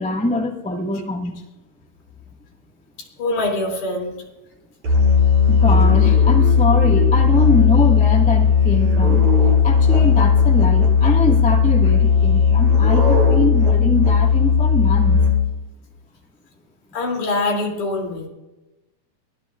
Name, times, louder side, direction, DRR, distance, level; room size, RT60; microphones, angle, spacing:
voice 1, 0.0-1.3 5.5-9.2 9.6-15.2, left 2 dB, 5° left, 0 dB, 0.6 m, -23 dB
voice 2, 3.2-4.1 16.9-18.3, left 2 dB, 75° left, 0 dB, 4.5 m, -23 dB
Musical instrument, 4.8-15.6, left 6 dB, 70° right, 8.4 m, -15 dB
22.5 x 17.0 x 2.5 m, 1.0 s
omnidirectional pair, 3.6 m